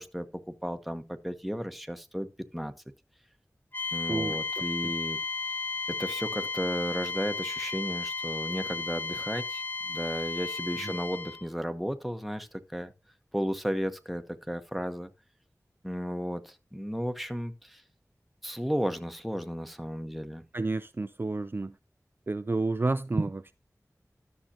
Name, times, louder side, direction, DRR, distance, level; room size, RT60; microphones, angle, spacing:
voice 1, 0.0-2.3 2.5-2.7 3.9-5.2 5.9-12.9 13.3-15.1 15.8-17.8 18.4-20.4, equal, ahead, 1.0 m, -34 dB
sound 1, 3.7-11.5, left 4 dB, 35° left, 0.5 m, -34 dB
voice 2, 4.1-4.4 10.8-10.9 20.5-21.7 22.3-23.5, right 3 dB, 35° right, 0.4 m, -30 dB
13.0 x 6.4 x 2.8 m
wide cardioid pair, 50°, 6 cm